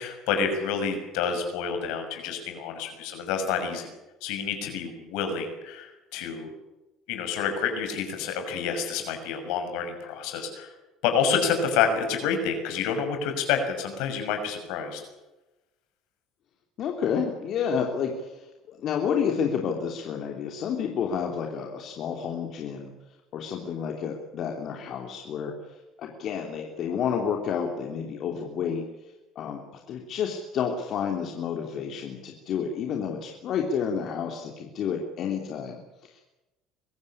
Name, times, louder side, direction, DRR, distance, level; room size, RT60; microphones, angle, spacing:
voice 1, 0.0-3.9 4.2-6.5 7.1-10.7 11.0-15.0, left 6 dB, 75° left, 6 dB, 6.1 m, -28 dB
voice 2, 16.8-22.9 23.3-25.6 26.0-28.8 29.3-36.2, left 7 dB, 55° left, 2 dB, 3.1 m, -30 dB
24.0 x 15.5 x 10.0 m, 1.1 s
supercardioid pair, 80°, 0 cm